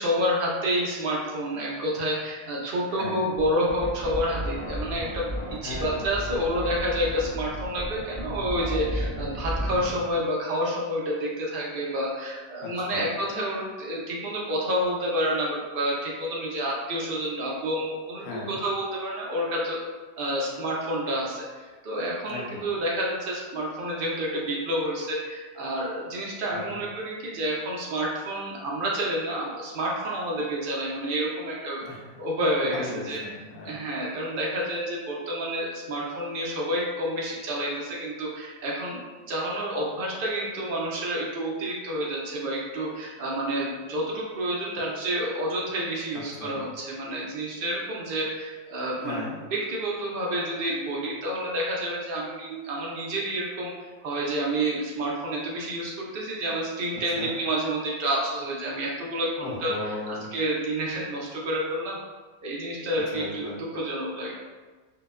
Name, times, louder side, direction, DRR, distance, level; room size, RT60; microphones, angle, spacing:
voice 1, 0.0-19.8 20.2-31.9 32.2-33.2 33.6-39.0 39.3-53.7 54.0-59.7 60.1-62.0 62.4-64.3, equal, 65° right, -3 dB, 0.5 m, -29 dB
voice 2, 2.9-3.3 5.6-6.0 12.6-13.1 18.2-18.6 22.3-22.7 26.5-26.8 31.8-32.2 32.7-33.8 46.3-46.6 49.0-49.4 57.2-57.3 59.4-60.3 63.1-63.6, left 2 dB, 85° left, -3 dB, 1.0 m, -37 dB
sound 1, 3.4-10.0, equal, 30° left, 0.6 m, -33 dB
2.8 x 2.0 x 2.2 m, 1.3 s
omnidirectional pair, 1.4 m